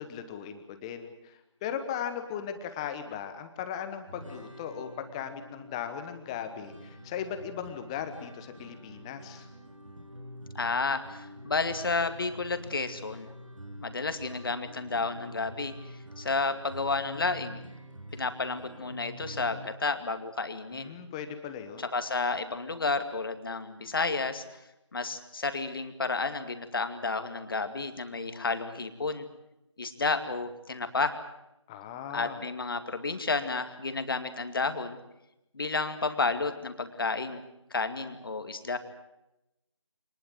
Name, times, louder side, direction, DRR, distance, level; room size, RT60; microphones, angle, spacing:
voice 1, 0.0-9.5 20.7-21.8 31.7-32.4, left 8 dB, 10° left, 9 dB, 1.1 m, -38 dB
sound 1, 4.1-19.7, equal, 90° right, 7.0 m, -47 dB
voice 2, 10.5-13.3 13.8-15.7 16.2-17.6 18.1-21.0 21.8-24.4 24.9-29.3 29.8-31.2 32.1-35.0 35.5-37.4 37.7-38.8, left 3 dB, 45° left, 8 dB, 2.3 m, -31 dB
26.0 x 20.0 x 7.7 m, 0.89 s
figure-of-eight pair, 155°, 16 cm